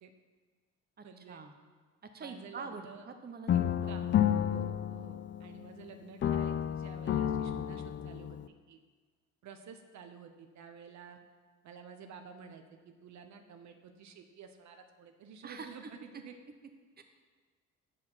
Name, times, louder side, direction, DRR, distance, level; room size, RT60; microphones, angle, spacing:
voice 1, 1.0-1.4 2.2-3.0 3.5-8.4 8.7-8.8 9.4-11.2 11.6-16.4, right 6 dB, 70° right, 6 dB, 0.8 m, -51 dB
voice 2, 2.1-4.1 15.4-15.9 17.0-17.1, right 4 dB, 30° right, 6 dB, 0.8 m, -45 dB
sound 1, 3.5-5.8 6.2-8.5, left 10 dB, 40° left, 0.4 m, -31 dB
6.6 x 6.5 x 5.7 m, 1.5 s
cardioid pair, 90°, 30 cm